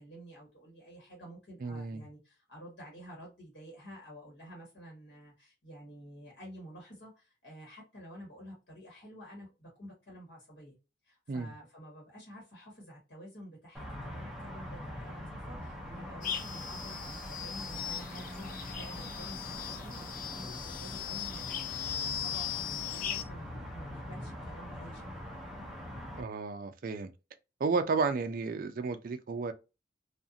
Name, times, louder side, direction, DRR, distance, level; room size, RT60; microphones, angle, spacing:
voice 1, 0.0-10.8 11.0-25.1, equal, 70° left, 1.3 m, -50 dB
voice 2, 1.6-2.0 11.3-11.5 26.2-27.1 27.6-29.5, right 4 dB, 50° right, 0.3 m, -32 dB
sound 1, 13.7-26.2, left 1 dB, ahead, 0.6 m, -43 dB
sound 2, 16.2-23.2, left 9 dB, 45° left, 0.3 m, -38 dB
2.4 x 2.4 x 2.7 m
head